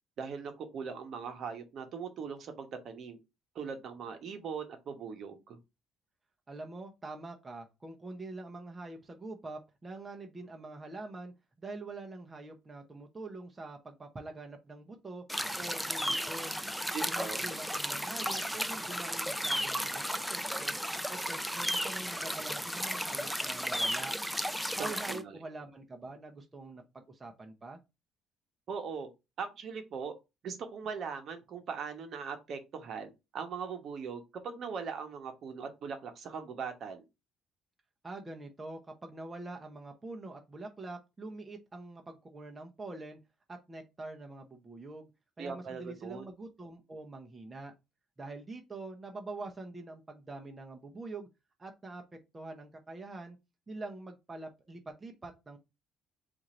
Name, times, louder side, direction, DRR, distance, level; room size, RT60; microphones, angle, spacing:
voice 1, 0.2-3.2 3.5-5.6 16.9-17.4 24.8-25.4 28.7-29.1 29.4-30.1 30.4-37.0 45.4-46.2, right 6 dB, 60° right, 1.0 m, -40 dB
voice 2, 6.5-15.2 15.6-16.6 17.1-20.7 21.1-24.2 24.8-27.8 38.0-43.2 43.5-45.1 45.4-47.7 48.2-51.3 51.6-52.1 52.3-53.4 53.7-55.6, right 2 dB, 20° right, 0.8 m, -45 dB
sound 1, 15.3-25.2, equal, ahead, 0.4 m, -34 dB
4.5 x 2.6 x 4.2 m
cardioid pair, 105°, 0 cm